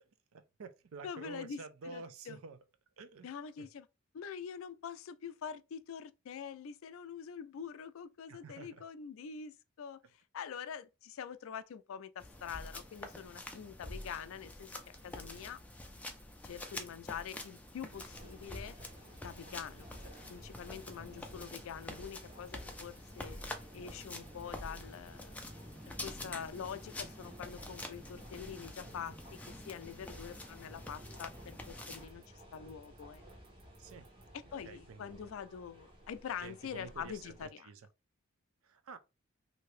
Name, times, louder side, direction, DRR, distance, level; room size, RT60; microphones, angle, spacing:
voice 1, 0.3-2.6 3.0-3.3 3.6-3.7 8.3-8.8 33.8-34.1 34.6-35.4 36.4-37.8 38.6-39.0, right 4 dB, 85° right, 0.5 m, -49 dB
voice 2, 1.0-2.4 3.2-3.9 4.1-10.0 10.3-15.6 16.4-18.7 19.2-19.9 20.3-23.4 23.7-25.3 25.9-32.2 32.5-33.2 34.3-37.7, left 7 dB, 75° left, 0.3 m, -45 dB
sound 1, 12.2-32.1, left 1 dB, 5° left, 0.4 m, -47 dB
sound 2, 14.4-34.2, right 7 dB, 50° right, 0.7 m, -66 dB
sound 3, 17.9-37.5, right 1 dB, 25° right, 0.9 m, -55 dB
2.8 x 2.6 x 3.2 m
head